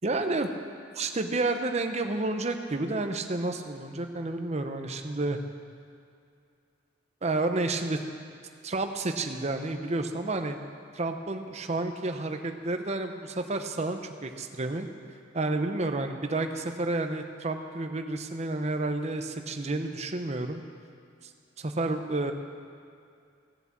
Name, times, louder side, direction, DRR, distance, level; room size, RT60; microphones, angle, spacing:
voice 1, 0.0-0.5 1.0-5.4 7.2-8.0 8.6-10.6 10.9-14.9 15.3-20.6 21.6-22.3, right 2 dB, 35° right, 6 dB, 0.8 m, -30 dB
16.0 x 7.4 x 7.4 m, 2.4 s
head